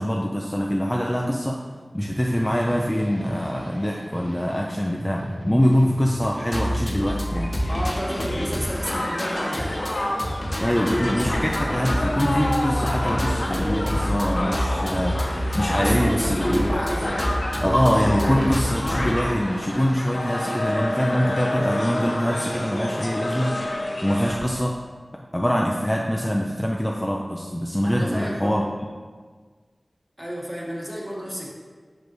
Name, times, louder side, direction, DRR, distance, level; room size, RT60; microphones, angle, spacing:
voice 1, 0.0-1.6 1.9-7.6 10.6-16.6 17.6-23.5 24.0-24.7 25.3-28.7, equal, 10° left, -1 dB, 0.5 m, -24 dB
sound 1, 2.0-7.0, equal, 80° right, 0.9 m, -36 dB
sound 2, 6.2-19.1, equal, 40° left, 0.9 m, -27 dB
Crowd, 7.2-24.6, left 1 dB, 65° left, 0.9 m, -29 dB
voice 2, 7.7-10.0 15.8-17.1 27.8-28.6 30.2-31.5, equal, 15° right, -4 dB, 1.4 m, -31 dB
6.2 x 5.2 x 3.1 m, 1.5 s
wide cardioid pair, 60°, 0 cm